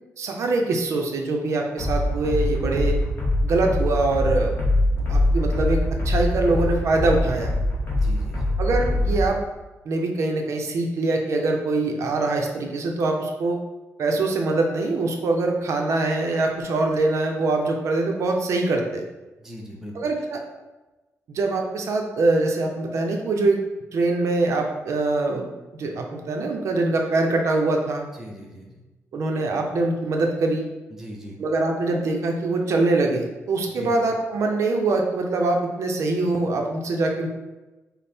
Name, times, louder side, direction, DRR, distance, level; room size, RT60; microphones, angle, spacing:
voice 1, 0.2-3.0 3.4-4.5 5.1-7.5 8.6-9.4 9.9-13.6 14.0-19.0 19.9-20.4 21.3-23.6 23.9-28.0 29.1-30.7 31.4-37.3, right 2 dB, 65° right, 2 dB, 0.5 m, -23 dB
sound 1, 1.8-9.3, left 1 dB, 40° left, 1.0 m, -23 dB
voice 2, 7.9-8.5 19.4-20.0 28.2-28.8 30.9-31.4 33.7-33.9, equal, 5° right, -2 dB, 0.6 m, -40 dB
5.3 x 2.1 x 4.2 m, 1.1 s
wide cardioid pair, 175°, 5 cm